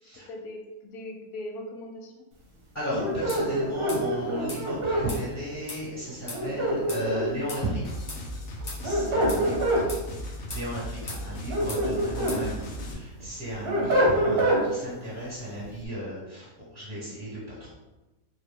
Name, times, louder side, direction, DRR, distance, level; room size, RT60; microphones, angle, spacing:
voice 1, 0.3-2.2 9.3-10.2, left 1 dB, 85° left, 1 dB, 1.2 m, -40 dB
voice 2, 2.7-7.9 8.8-9.5 10.5-17.7, equal, 10° left, -10 dB, 1.1 m, -34 dB
sound 1, 2.9-5.0 6.3-7.4 8.6-9.8 11.3-12.4 12.8-14.6, right 1 dB, 50° right, 0.8 m, -25 dB
sound 2, 3.3-3.4 3.9-4.0 4.5-4.6 5.1-5.2 5.7-5.8 6.3-6.4 6.9-7.0 7.5-7.6 8.1-8.2 8.7-8.8 9.3-9.4 9.9-10.0 10.5-10.7 11.1-11.2 11.7-11.8 12.3-12.4, left 2 dB, 35° left, 0.7 m, -38 dB
sound 3, 7.8-12.9, equal, 65° left, 0.9 m, -37 dB
3.2 x 2.3 x 3.4 m, 1.1 s
omnidirectional pair, 1.6 m